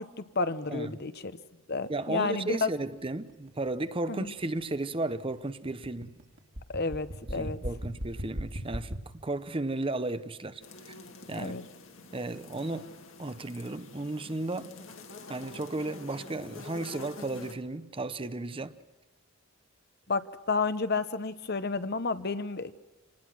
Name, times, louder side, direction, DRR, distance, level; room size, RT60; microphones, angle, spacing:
voice 1, 0.0-1.4 1.7-2.7 4.1-4.3 6.7-7.6 11.4-11.6 20.1-22.7, left 4 dB, 50° left, 1.0 m, -31 dB
sound 1, 1.7-9.0, equal, 60° right, 2.7 m, -39 dB
voice 2, 1.9-6.1 7.4-10.6 10.9-11.0 11.3-11.6 12.1-12.9 13.2-14.7 15.3-18.8, right 2 dB, 25° right, 0.8 m, -34 dB
sound 2, 10.6-17.5, left 2 dB, 70° left, 2.5 m, -47 dB
27.0 x 19.5 x 6.2 m
head